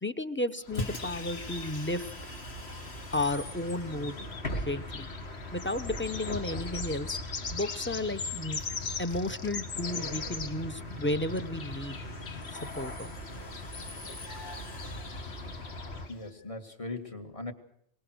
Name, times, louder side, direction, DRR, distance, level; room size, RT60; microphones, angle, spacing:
voice 1, 0.0-2.1 3.1-4.2 4.6-5.1 5.5-7.2 7.5-8.6 9.0-12.0 12.7-13.1 14.0-14.1, left 1 dB, 10° left, 11 dB, 0.8 m, -33 dB
sound 1, 0.6-2.1 3.3-3.4 3.9-10.7 10.9-16.1, left 5 dB, 90° left, 1.7 m, -41 dB
Bus, 0.7-16.1, left 1 dB, 65° left, 2.4 m, -40 dB
voice 2, 16.1-17.5, left 2 dB, 30° left, 5 dB, 2.0 m, -39 dB
23.5 x 20.5 x 6.3 m, 0.70 s
omnidirectional pair, 1.1 m